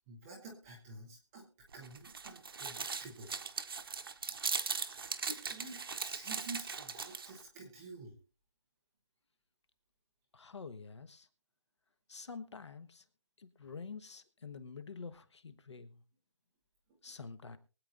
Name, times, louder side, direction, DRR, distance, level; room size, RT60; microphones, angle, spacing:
voice 1, 0.1-1.5 1.7-3.3 5.2-8.2 15.7-15.8, right 3 dB, 5° right, -3 dB, 0.5 m, -49 dB
sound 1, 1.7-7.4, right 5 dB, 45° right, 0.9 m, -39 dB
voice 2, 10.3-11.3 12.1-13.0 13.4-16.0 17.0-17.6, left 5 dB, 55° left, 11 dB, 1.2 m, -48 dB
23.5 x 8.7 x 2.5 m, 0.35 s
figure-of-eight pair, 165°, 17 cm